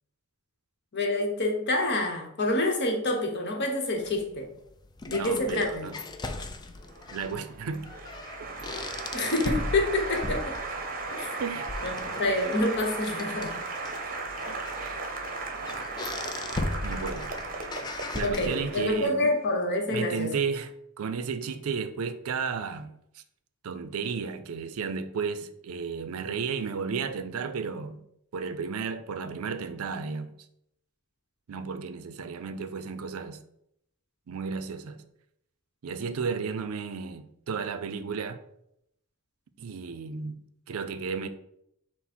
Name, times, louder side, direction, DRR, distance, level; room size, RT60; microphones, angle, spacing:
voice 1, 0.9-4.5 5.1-5.9 9.1-10.6 11.1-11.4 11.8-13.6 18.2-20.3, left 2 dB, 55° left, 0.9 m, -27 dB
sound 1, 4.0-19.0, left 2 dB, 20° left, 0.3 m, -38 dB
voice 2, 5.1-5.9 7.1-7.9 8.4-8.5 11.4-11.7 14.5-15.1 16.8-17.3 18.1-19.3 19.9-20.7 21.0-23.2 23.6-28.0 28.3-30.3 31.5-33.4 34.3-35.0 35.8-38.4 39.6-40.4 40.7-41.3, right 5 dB, 85° right, 0.4 m, -33 dB
Applause, 6.9-19.3, right 3 dB, 40° right, 0.7 m, -36 dB
5.9 x 2.1 x 4.2 m
head